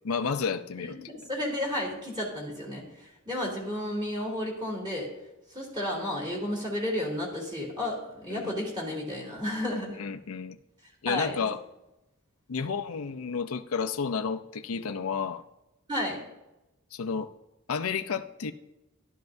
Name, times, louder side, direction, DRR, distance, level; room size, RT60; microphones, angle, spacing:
voice 1, 0.0-1.0 8.3-8.5 10.0-10.6 11.0-11.6 12.5-15.4 16.9-17.3 17.7-18.5, left 5 dB, 80° left, 8 dB, 0.6 m, -31 dB
voice 2, 0.8-2.8 3.2-5.1 5.5-10.0 11.1-11.5 15.9-16.2, left 1 dB, 20° right, -3 dB, 3.3 m, -32 dB
14.0 x 12.0 x 2.6 m, 0.93 s
head